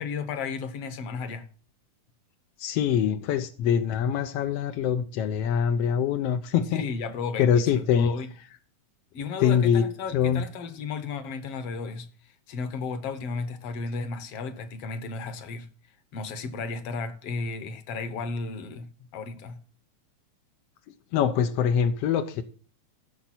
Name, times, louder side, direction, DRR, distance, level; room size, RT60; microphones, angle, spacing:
voice 1, 0.0-1.5 6.7-8.3 9.1-15.7 16.1-19.6, left 4 dB, 60° left, 1.8 m, -34 dB
voice 2, 2.6-6.8 7.4-8.1 9.4-9.8 10.1-10.4 21.1-22.4, left 8 dB, 75° left, 1.4 m, -24 dB
16.0 x 6.8 x 4.3 m
omnidirectional pair, 3.6 m